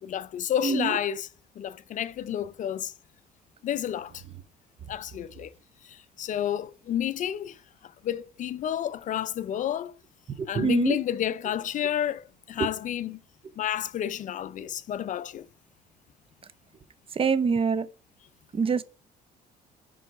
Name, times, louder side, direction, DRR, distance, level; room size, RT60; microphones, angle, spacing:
voice 1, 0.0-1.3 1.6-2.9 3.6-4.2 4.9-5.5 5.8-7.6 7.8-9.9 10.5-13.2 13.6-15.4, left 10 dB, 50° left, 0.4 m, -30 dB
voice 2, 0.6-1.0 10.4-11.0 12.6-12.7 17.1-17.9 18.5-18.8, right 5 dB, 35° right, 0.7 m, -25 dB
9.7 x 3.8 x 4.6 m
cardioid pair, 110°, 17 cm